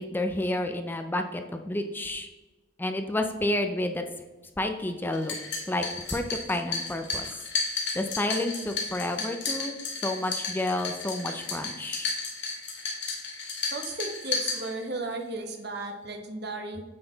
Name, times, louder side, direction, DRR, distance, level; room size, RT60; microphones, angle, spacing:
voice 1, 0.0-2.3 2.8-4.0 4.6-5.3 5.7-5.8 6.1-7.4 7.9-12.1, left 1 dB, 10° left, 6 dB, 0.4 m, -30 dB
sound 1, 5.1-15.1, left 4 dB, 65° left, 1.7 m, -33 dB
voice 2, 13.7-16.8, right 2 dB, 60° right, 4 dB, 1.0 m, -35 dB
8.7 x 4.0 x 3.9 m, 1.1 s
head